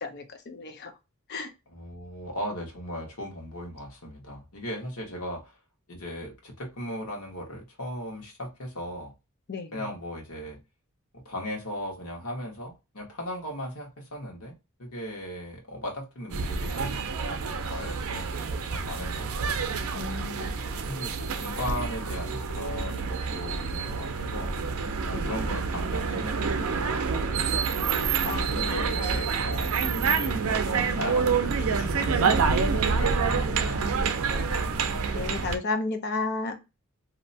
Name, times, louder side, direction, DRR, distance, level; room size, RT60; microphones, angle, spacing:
voice 1, 0.0-0.9 1.3-1.5 9.5-9.8 19.9-20.5 25.1-25.4 28.3-29.0 35.1-36.5, left 3 dB, 50° left, 6 dB, 0.6 m, -33 dB
voice 2, 1.7-5.5 5.9-9.1 9.7-10.6 11.2-14.5 14.8-17.0 17.3-19.9 20.4-20.6 20.9-24.6 25.0-27.0 27.3-27.7 27.9-34.8, left 1 dB, 80° left, -1 dB, 1.2 m, -38 dB
toronto chinatown, 16.3-35.6, right 5 dB, 70° right, 0.5 m, -27 dB
2.7 x 2.1 x 2.6 m, 0.26 s
head